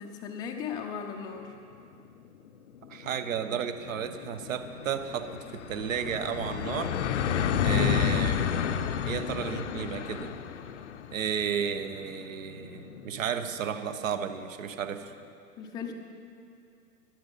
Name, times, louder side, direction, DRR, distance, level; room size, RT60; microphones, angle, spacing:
voice 1, 0.0-1.5 15.6-15.9, left 7 dB, 10° left, 2 dB, 0.5 m, -37 dB
sound 1, 1.9-2.0 2.3-2.4 2.7-14.1, left 8 dB, 50° left, 0.6 m, -32 dB
voice 2, 2.9-7.0 7.6-10.3 11.1-15.1, right 8 dB, 55° right, 10 dB, 0.9 m, -33 dB
12.0 x 12.0 x 5.6 m, 2.5 s
figure-of-eight pair, 105°, 47 cm